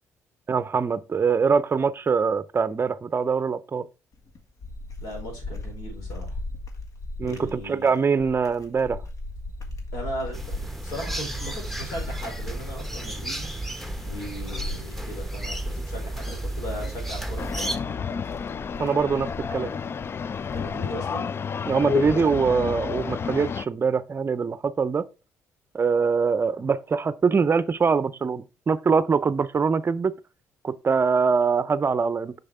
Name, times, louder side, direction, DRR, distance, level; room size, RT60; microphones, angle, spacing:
voice 1, 0.5-3.9 7.2-9.0 18.8-19.7 21.7-25.1 25.7-30.1 30.6-32.3, right 5 dB, 35° right, 0.6 m, -23 dB
sound 1, 4.1-21.0, left 2 dB, 55° left, 1.6 m, -38 dB
voice 2, 5.0-6.4 7.2-7.9 9.9-10.4 10.8-13.5 14.0-18.0 20.5-21.3, equal, 80° left, 4.3 m, -37 dB
sound 2, 10.3-17.8, right 1 dB, 5° left, 1.1 m, -33 dB
sound 3, 17.4-23.7, left 6 dB, 35° left, 0.3 m, -30 dB
6.4 x 6.0 x 3.5 m
supercardioid pair, 60°, 7 cm